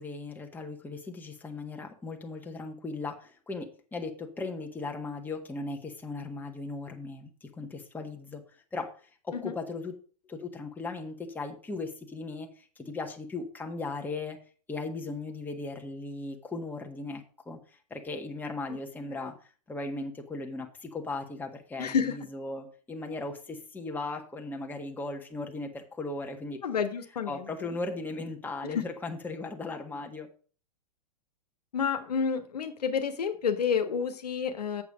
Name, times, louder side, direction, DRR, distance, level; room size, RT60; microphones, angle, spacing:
voice 1, 0.0-9.0 9.2-9.9 10.3-14.4 14.7-17.6 17.9-19.4 19.7-26.6 27.3-30.3, left 3 dB, 10° left, 2 dB, 1.6 m, -37 dB
voice 2, 21.8-22.2 26.6-27.5 28.7-28.8 31.7-34.8, left 6 dB, 75° left, 7 dB, 1.4 m, -29 dB
8.0 x 7.3 x 5.0 m, 0.39 s
hypercardioid pair, 110°, 20 cm